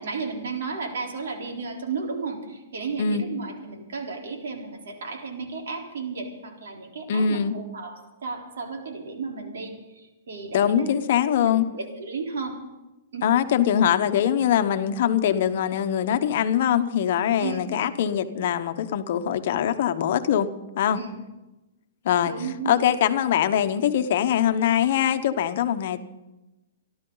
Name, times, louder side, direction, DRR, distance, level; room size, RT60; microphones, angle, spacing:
voice 1, 0.0-10.9 11.4-12.6 13.1-13.3 17.4-17.7 21.0-21.2 22.2-22.8, right 4 dB, 80° right, 1 dB, 3.8 m, -33 dB
voice 2, 7.1-7.6 10.5-11.6 13.2-20.5 20.8-21.0 22.0-22.3 22.6-26.0, left 9 dB, 50° left, 10 dB, 1.0 m, -22 dB
26.5 x 12.0 x 4.0 m, 1.0 s
hypercardioid pair, 160°, 0 cm